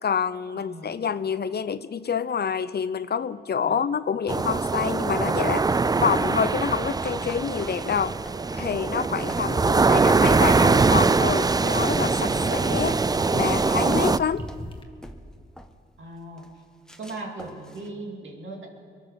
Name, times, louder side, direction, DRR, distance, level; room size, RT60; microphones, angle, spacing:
voice 1, 0.0-5.6 6.0-8.2 8.5-13.0 13.3-14.4, left 7 dB, 55° left, 14 dB, 0.7 m, -27 dB
voice 2, 0.6-0.9 3.6-3.9 16.0-16.5 17.0-18.7, right 2 dB, 70° right, 0 dB, 2.8 m, -39 dB
sound 1, 4.3-14.2, right 4 dB, 20° right, 0.4 m, -22 dB
sound 2, 7.3-13.1 13.4-13.7 13.9-14.8 15.0-15.9 16.4-16.6 16.9-17.9, equal, 5° left, 1.4 m, -45 dB
sound 3, 9.6-14.8, left 1 dB, 25° left, 1.7 m, -39 dB
23.0 x 8.4 x 6.8 m, 2.3 s
cardioid pair, 50°, 20 cm